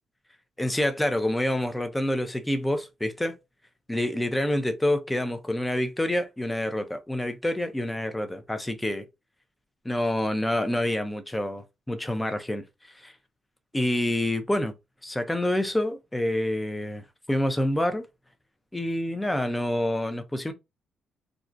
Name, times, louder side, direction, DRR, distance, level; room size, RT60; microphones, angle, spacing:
voice 1, 0.6-3.4 3.9-9.1 9.8-12.6 13.0-13.1 13.7-14.7 15.0-18.0 18.7-20.5, left 1 dB, 10° left, 0.4 m, -27 dB
2.5 x 2.1 x 2.4 m
cardioid pair, 90°, 0 cm